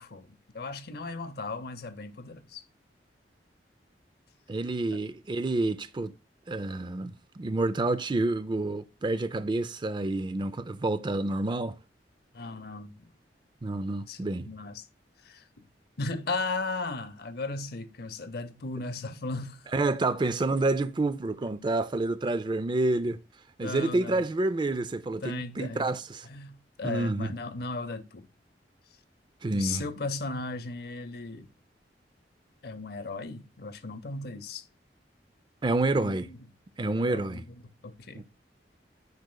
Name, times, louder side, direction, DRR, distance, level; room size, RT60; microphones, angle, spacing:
voice 1, 0.0-2.6 4.9-5.0 12.3-13.1 14.1-14.9 15.2-15.7 16.0-19.7 23.6-24.3 25.2-25.9 26.2-28.3 29.5-31.5 32.6-34.7 36.0-36.4 36.8-38.2, left 3 dB, 60° left, 0.6 m, -36 dB
voice 2, 4.5-6.1 6.5-11.8 13.6-14.5 19.7-23.2 23.6-26.3 26.8-27.3 29.4-29.8 35.6-36.3 36.8-37.4 38.1-38.2, right 2 dB, 25° right, 0.4 m, -28 dB
9.4 x 4.8 x 2.2 m
head